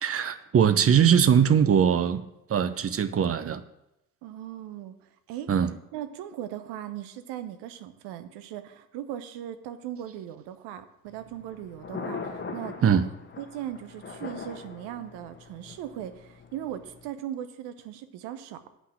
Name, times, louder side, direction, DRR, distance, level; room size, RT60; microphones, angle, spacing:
voice 1, 0.0-2.2 2.5-3.6 5.5-5.7 12.8-13.0, right 8 dB, 30° right, 12 dB, 0.8 m, -21 dB
voice 2, 4.2-5.0 5.3-5.5 5.9-13.1 13.4-18.7, right 11 dB, 60° right, 11 dB, 1.0 m, -38 dB
Thunder, 11.1-17.1, left 4 dB, 25° left, 1.5 m, -41 dB
8.6 x 5.7 x 7.3 m, 0.85 s
hypercardioid pair, 55°, 44 cm